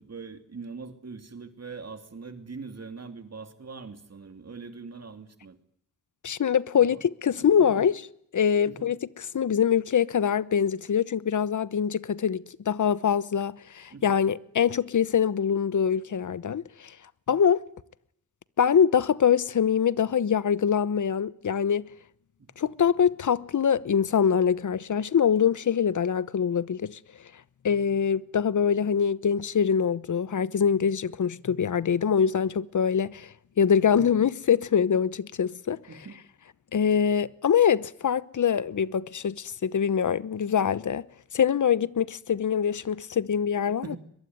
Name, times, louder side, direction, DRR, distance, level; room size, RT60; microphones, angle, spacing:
voice 1, 0.0-5.6 6.7-7.0 7.4-7.8 8.6-8.9 13.9-14.0 22.4-22.5 33.8-34.1 35.9-36.2 43.8-44.0, right 4 dB, 55° right, 2.9 m, -42 dB
voice 2, 6.2-8.1 8.3-16.9 17.3-17.6 18.6-21.9 22.6-27.0 27.6-35.8 36.7-41.0 41.3-44.0, left 7 dB, 75° left, 1.0 m, -24 dB
22.5 x 22.0 x 9.6 m
cardioid pair, 55°, 30 cm